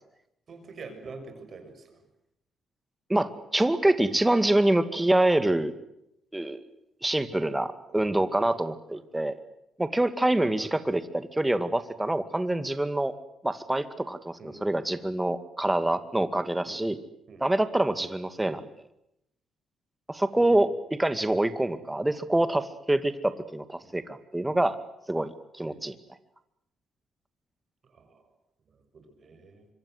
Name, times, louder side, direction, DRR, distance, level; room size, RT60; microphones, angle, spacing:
voice 1, 0.5-2.0 7.9-8.4 8.9-9.0 10.6-10.7 14.4-14.7 16.6-16.9 17.3-17.5 18.4-18.6 20.3-20.7 23.8-23.9 25.6-25.9 27.8-28.3 28.6-29.7, right 4 dB, 50° right, 7 dB, 7.0 m, -47 dB
voice 2, 3.1-5.7 6.3-6.6 7.0-9.4 9.8-13.1 13.4-17.0 17.4-18.6 20.1-20.7 21.0-24.8 25.1-25.9, right 1 dB, 10° right, 11 dB, 2.2 m, -26 dB
25.5 x 24.0 x 8.0 m, 0.81 s
cardioid pair, 90°, 0 cm